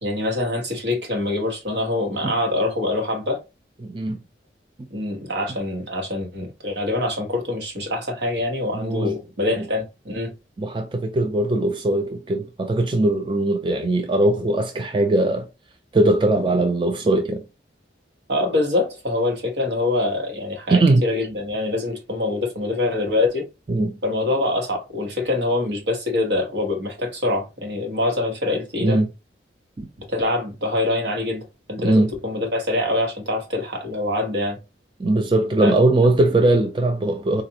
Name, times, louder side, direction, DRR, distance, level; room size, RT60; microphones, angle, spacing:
voice 1, 0.0-3.4 4.9-10.3 18.3-23.5 24.0-29.0 30.1-31.4 31.7-34.6 35.6-35.7, left 2 dB, 80° right, 1.2 m, -24 dB
voice 2, 3.8-4.2 8.7-9.2 9.6-9.7 10.6-15.5 15.9-17.4 20.7-21.0 23.7-24.0 28.8-29.1 29.8-29.9 31.8-32.1 35.0-37.4, right 2 dB, 25° right, 0.4 m, -20 dB
4.0 x 2.5 x 2.8 m
head